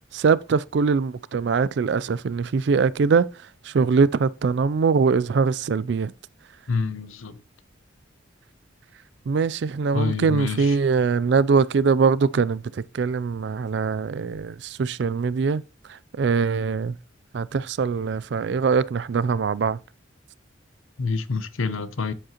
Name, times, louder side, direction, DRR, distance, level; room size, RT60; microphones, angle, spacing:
voice 1, 0.1-3.3 3.6-6.1 9.3-15.6 15.9-17.0 17.3-19.8, right 5 dB, 60° right, 0.3 m, -22 dB
voice 2, 6.7-7.4 9.9-10.7 21.0-22.1, left 4 dB, 85° left, 0.7 m, -27 dB
8.6 x 7.6 x 2.9 m
head